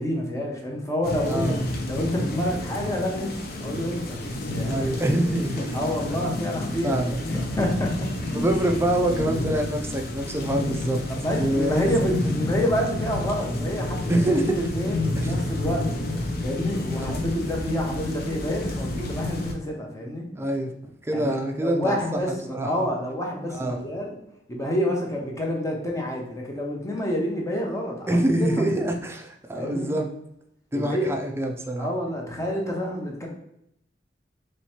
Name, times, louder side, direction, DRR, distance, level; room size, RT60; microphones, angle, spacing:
voice 1, 0.0-1.6 1.9-3.3 3.6-5.0 5.7-8.3 11.1-15.8 16.4-20.3 21.1-24.1 24.5-28.8 29.6-29.9 30.7-31.1 31.8-33.3, equal, 20° left, -1 dB, 0.8 m, -28 dB
sound 1, 1.0-19.5, left 2 dB, 60° left, 0.6 m, -30 dB
voice 2, 1.2-1.6 4.6-5.8 6.8-7.5 8.3-11.0 11.3-11.9 14.1-14.6 15.2-15.3 16.9-17.2 20.3-20.7 21.0-22.9 23.5-23.8 28.1-30.1 30.7-31.9, right 1 dB, 15° right, 3 dB, 0.5 m, -26 dB
3.2 x 3.0 x 4.3 m, 0.77 s
head